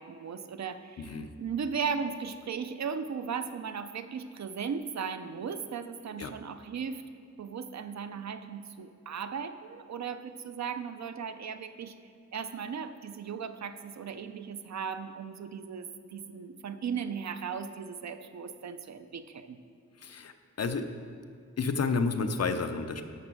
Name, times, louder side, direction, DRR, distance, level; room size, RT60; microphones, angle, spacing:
voice 1, 0.0-7.0 7.4-11.9 12.3-19.6, right 6 dB, 70° right, 10 dB, 0.6 m, -37 dB
voice 2, 1.0-1.3 6.2-6.3 20.0-20.3 20.6-20.9 21.6-23.0, left 4 dB, 60° left, 8 dB, 0.7 m, -30 dB
12.5 x 6.0 x 6.2 m, 2.4 s
wide cardioid pair, 165°, 29 cm